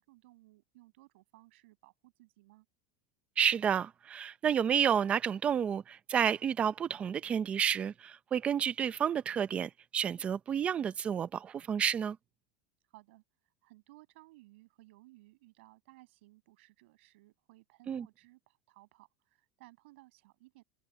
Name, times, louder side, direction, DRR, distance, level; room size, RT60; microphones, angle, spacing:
voice 1, 0.0-2.7 12.9-13.2 13.6-20.6, right 20 dB, 70° right, 7.0 m, -59 dB
voice 2, 3.4-12.2 17.9-18.1, right 8 dB, 20° right, 0.5 m, -30 dB
supercardioid pair, 175°, 7 cm